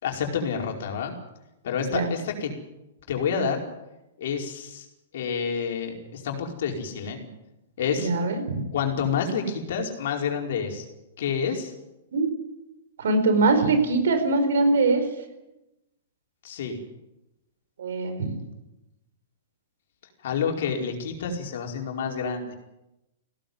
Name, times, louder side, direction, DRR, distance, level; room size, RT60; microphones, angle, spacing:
voice 1, 0.0-1.1 1.6-2.5 3.1-3.6 4.2-4.9 5.1-7.2 7.8-8.1 8.7-10.8 11.2-11.7 16.4-16.8 20.2-22.5, left 6 dB, 60° left, 2 dB, 4.8 m, -28 dB
voice 2, 8.0-8.7 12.1-12.3 13.0-15.1 17.8-18.4, right 3 dB, 70° right, 8 dB, 4.8 m, -22 dB
19.5 x 17.0 x 9.5 m, 0.94 s
figure-of-eight pair, 105°, 0 cm